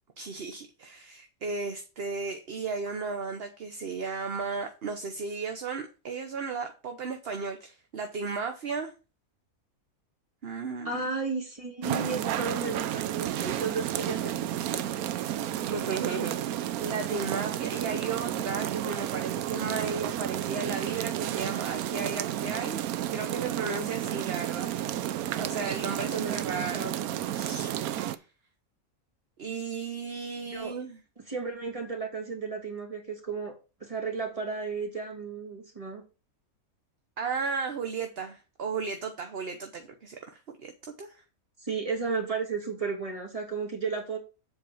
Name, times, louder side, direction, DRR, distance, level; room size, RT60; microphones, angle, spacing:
voice 1, 0.2-8.9 10.4-11.0 15.6-16.4 16.8-22.8 23.1-25.1 25.4-26.9 27.3-28.2 29.4-31.0 37.2-41.2, right 4 dB, 45° right, 6 dB, 1.1 m, -35 dB
voice 2, 10.8-14.9 26.1-26.4 26.7-27.0 30.5-30.7 31.3-33.5 33.8-36.0 41.6-44.2, right 4 dB, 20° right, 0 dB, 2.8 m, -33 dB
sound 1, 11.8-28.2, right 12 dB, 80° right, 1.1 m, -32 dB
7.7 x 4.8 x 7.2 m, 0.31 s
omnidirectional pair, 1.5 m